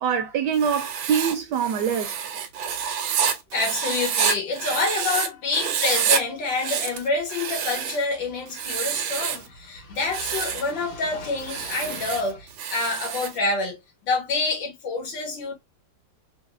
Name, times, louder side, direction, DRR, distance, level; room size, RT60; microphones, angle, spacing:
voice 1, 0.0-2.1, right 7 dB, 75° right, 1.0 m, -24 dB
Writing, 0.5-5.3 5.5-6.2 6.5-8.0 8.5-9.5 10.0-10.7 11.4-13.4, right 8 dB, 90° right, 1.4 m, -28 dB
voice 2, 3.2-15.6, left 3 dB, 70° left, 1.9 m, -27 dB
4.0 x 2.1 x 2.4 m
omnidirectional pair, 2.1 m